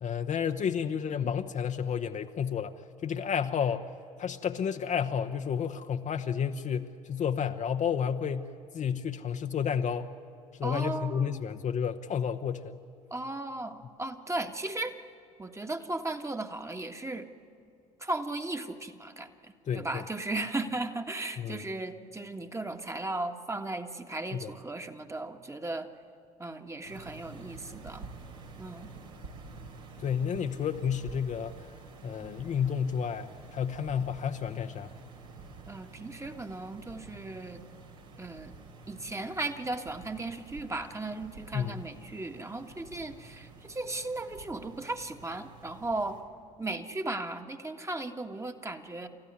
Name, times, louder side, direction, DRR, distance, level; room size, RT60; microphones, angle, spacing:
voice 1, 0.0-2.7 3.0-3.9 4.2-10.1 10.6-12.8 19.7-20.0 21.4-21.7 24.3-24.5 30.0-31.6 32.0-34.9 41.5-41.8, left 7 dB, 40° left, 6 dB, 1.0 m, -31 dB
voice 2, 10.6-11.4 13.1-14.9 15.4-17.2 18.0-25.9 26.4-28.1 28.6-28.9 35.7-37.6 38.2-38.5 38.9-46.2 46.6-49.1, right 2 dB, 15° right, 6 dB, 1.6 m, -36 dB
sound 1, 26.8-46.2, right 4 dB, 75° right, 3.4 m, -49 dB
30.0 x 14.0 x 9.7 m, 2.4 s
figure-of-eight pair, 55°, 19 cm